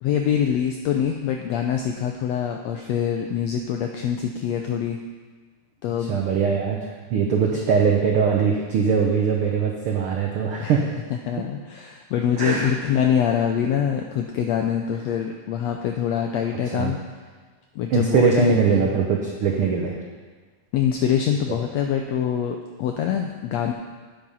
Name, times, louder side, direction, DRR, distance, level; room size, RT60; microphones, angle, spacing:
voice 1, 0.0-5.0 5.8-6.1 7.5-7.6 10.6-10.8 11.3-17.0 17.7-18.9 20.7-23.7, left 8 dB, 85° left, 3 dB, 1.5 m, -24 dB
voice 2, 6.1-6.8 7.1-10.8 12.4-12.7 16.7-16.9 17.9-20.0, right 6 dB, 85° right, 0 dB, 1.2 m, -21 dB
8.9 x 8.6 x 5.5 m, 1.5 s
omnidirectional pair, 3.7 m